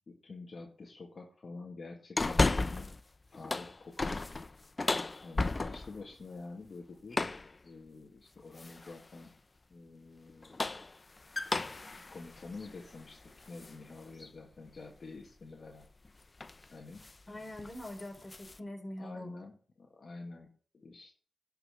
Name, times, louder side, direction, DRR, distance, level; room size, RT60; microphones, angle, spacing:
voice 1, 0.1-2.9 3.3-4.2 5.2-7.2 7.6-9.3 9.7-10.7 12.1-15.9 16.7-17.1 19.0-21.1, left 3 dB, 50° left, -1 dB, 2.1 m, -48 dB
sound 1, 2.2-3.0 3.3-6.0 7.1-7.5 8.6-9.0 10.3-13.7 14.2-14.3 15.8-16.1 16.4-16.6 17.0-17.2 17.5-18.6, left 3 dB, 35° left, 0.6 m, -34 dB
voice 2, 17.3-19.4, left 1 dB, 20° left, 1 dB, 4.7 m, -44 dB
11.0 x 5.8 x 6.6 m, 0.43 s
cardioid pair, 65°, 0 cm